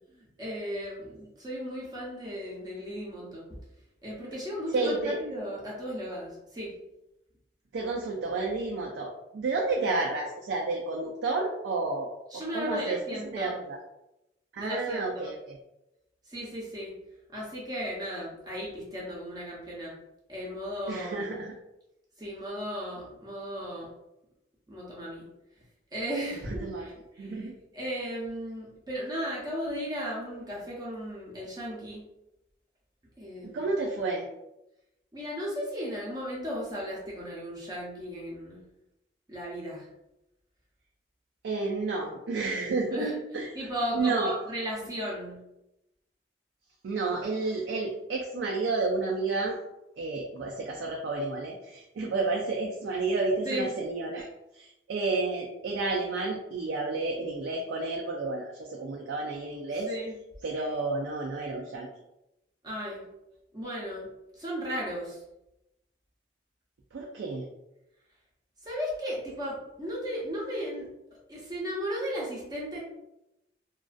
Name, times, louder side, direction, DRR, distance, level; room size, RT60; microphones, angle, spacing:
voice 1, 0.1-3.5 4.0-6.7 12.3-13.6 14.6-15.3 16.3-16.9 17.3-19.9 20.3-21.4 22.2-23.9 24.7-25.2 25.9-32.0 33.2-33.6 35.1-38.6 39.3-39.9 42.9-43.2 43.5-45.4 53.4-53.7 59.9-60.2 62.6-63.0 63.5-65.2 68.6-72.8, equal, 20° right, -5 dB, 0.6 m, -35 dB
voice 2, 4.7-5.2 7.7-13.0 13.3-13.8 14.5-15.6 20.9-21.5 26.6-26.9 27.2-27.5 33.4-34.3 41.4-43.1 43.3-43.5 43.9-44.3 46.8-49.6 50.0-54.3 54.5-59.9 60.4-61.9 66.9-67.4, right 3 dB, 80° right, -1 dB, 0.4 m, -31 dB
2.4 x 2.3 x 2.3 m, 0.89 s
head